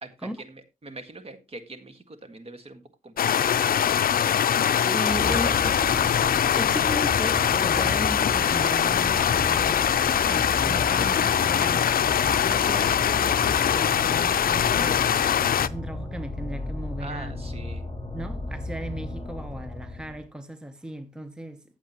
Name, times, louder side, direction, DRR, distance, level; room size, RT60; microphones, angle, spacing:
voice 1, 0.0-3.8 5.2-5.6 5.9-6.0 17.0-17.9, right 2 dB, 40° right, 1.8 m, -43 dB
sound 1, 3.2-15.7, left 9 dB, 75° left, 0.5 m, -22 dB
voice 2, 4.3-5.9 6.6-9.9 10.3-12.0 12.4-17.3 18.1-21.6, right 1 dB, 5° right, 0.8 m, -36 dB
sound 2, 5.1-20.3, left 2 dB, 25° left, 4.3 m, -35 dB
15.0 x 7.3 x 3.0 m
wide cardioid pair, 105°, 15 cm